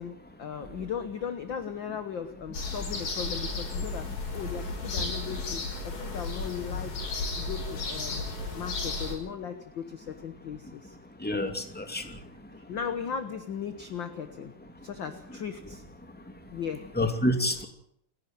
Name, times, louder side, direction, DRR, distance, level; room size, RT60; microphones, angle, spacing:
voice 1, 0.0-7.0 7.3-11.0 11.9-12.1 12.6-14.5 14.8-15.8 16.5-16.9, left 7 dB, 60° left, 9 dB, 1.2 m, -37 dB
sound 1, 2.5-9.2, left 3 dB, 90° left, 6.7 m, -34 dB
voice 2, 11.2-12.0 16.9-17.7, left 1 dB, 5° left, 5 dB, 2.2 m, -27 dB
29.5 x 11.5 x 9.2 m, 0.70 s
omnidirectional pair, 3.8 m